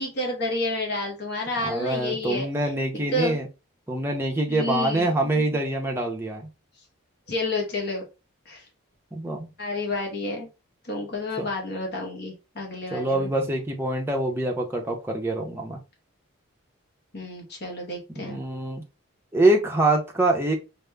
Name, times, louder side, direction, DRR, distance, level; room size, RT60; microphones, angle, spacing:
voice 1, 0.0-3.4 4.5-5.1 7.3-8.0 8.5-8.6 9.6-10.5 10.8-13.3 17.1-18.4, left 2 dB, 50° left, 1.1 m, -30 dB
voice 2, 1.6-3.5 3.9-6.5 9.1-9.5 11.4-11.5 12.9-15.8 18.1-18.8 19.3-20.6, right 2 dB, 10° right, 0.7 m, -25 dB
5.1 x 2.1 x 3.3 m
head